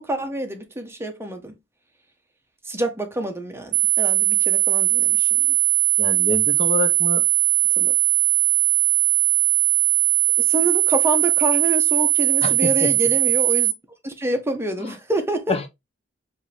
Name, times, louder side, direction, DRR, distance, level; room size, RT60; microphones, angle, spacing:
voice 1, 0.0-1.5 2.7-5.5 7.8-7.9 10.4-13.7 14.0-15.6, right 1 dB, 15° right, 0.8 m, -27 dB
sound 1, 3.7-13.7, right 16 dB, 70° right, 0.5 m, -19 dB
voice 2, 6.0-7.2 12.4-12.9 14.8-14.9 15.5-15.7, left 4 dB, 35° left, 0.6 m, -27 dB
5.2 x 2.7 x 3.2 m
head